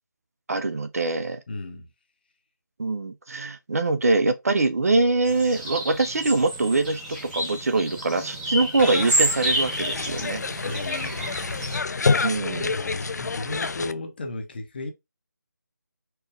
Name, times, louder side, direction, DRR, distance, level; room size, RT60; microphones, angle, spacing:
voice 1, 0.5-1.4 2.8-10.4 12.2-12.7, right 3 dB, 50° right, 0.6 m, -23 dB
voice 2, 1.5-1.9 10.6-11.4 12.6-14.9, left 2 dB, 30° left, 0.8 m, -34 dB
sound 1, 5.2-11.8, right 1 dB, 5° right, 0.7 m, -29 dB
sound 2, 8.8-13.9, left 4 dB, 60° left, 0.4 m, -28 dB
4.4 x 2.2 x 3.3 m
figure-of-eight pair, 165°, 10 cm